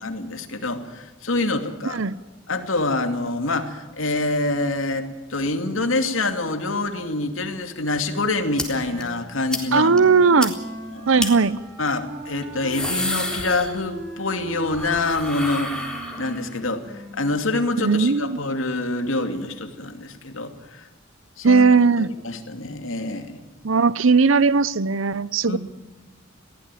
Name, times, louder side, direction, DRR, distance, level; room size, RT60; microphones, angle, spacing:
voice 1, 0.0-2.0 2.5-10.0 10.3-10.4 10.9-11.2 11.8-20.8 21.4-21.6 22.0-23.4 25.5-25.6, left 2 dB, 85° left, 2.6 m, -26 dB
sound 1, 8.6-8.7 9.0-9.1 9.5-9.6 10.0-10.1 10.4-10.5 11.2-11.3 12.4-14.1 14.4-16.6, left 2 dB, 5° left, 3.8 m, -30 dB
Wind instrument woodwind instrument, 8.7-18.2, right 1 dB, 45° right, 6.3 m, -40 dB
voice 2, 9.7-10.5 11.1-11.6 17.8-18.4 21.4-22.1 23.6-25.6, right 4 dB, 80° right, 0.8 m, -18 dB
22.0 x 17.0 x 9.2 m
head